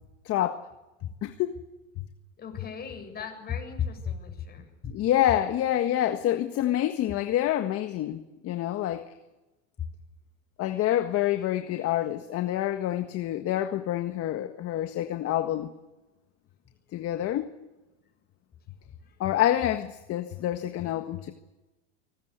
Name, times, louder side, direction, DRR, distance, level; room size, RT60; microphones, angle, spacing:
voice 1, 0.2-0.7 1.2-1.6 4.9-9.1 10.6-15.7 16.9-17.5 19.2-21.3, left 12 dB, 40° left, 1.6 m, -27 dB
voice 2, 2.4-4.7 9.8-9.9 19.0-19.2, left 7 dB, 25° left, 7.6 m, -35 dB
25.0 x 20.0 x 8.2 m
supercardioid pair, 125°, 35 cm